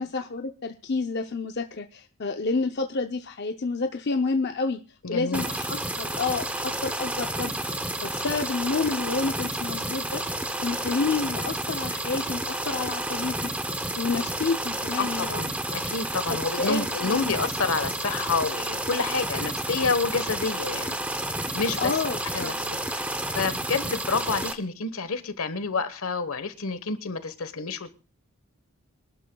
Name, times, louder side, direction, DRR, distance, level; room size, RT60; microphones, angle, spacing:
voice 1, 0.0-4.8 5.1-10.2 10.6-13.7 14.0-15.4 16.6-17.4 21.8-22.7, left 4 dB, 50° left, 0.6 m, -29 dB
voice 2, 5.0-5.4 15.0-21.0 21.5-22.0 22.3-27.9, left 4 dB, 75° left, 1.2 m, -29 dB
sound 1, 5.3-24.5, right 1 dB, 5° right, 0.7 m, -31 dB
25.5 x 12.0 x 2.3 m
head